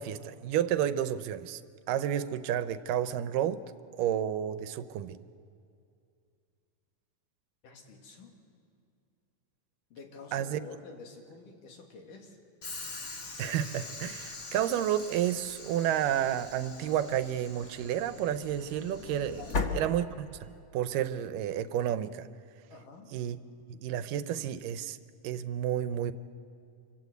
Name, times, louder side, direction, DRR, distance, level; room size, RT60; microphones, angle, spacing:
voice 1, 0.0-1.6 1.9-3.6 4.0-5.2 10.3-10.6 13.4-19.4 19.7-22.3 23.1-23.4 23.7-25.0 25.2-26.1, right 10 dB, 85° right, 12 dB, 2.4 m, -31 dB
voice 2, 7.6-8.3 9.9-12.4 19.4-19.7 22.7-23.1, left 4 dB, 75° left, 2 dB, 3.9 m, -49 dB
Train / Sliding door, 12.6-20.6, left 3 dB, 50° left, 0.8 m, -40 dB
26.0 x 25.5 x 8.0 m, 2.4 s
omnidirectional pair, 3.8 m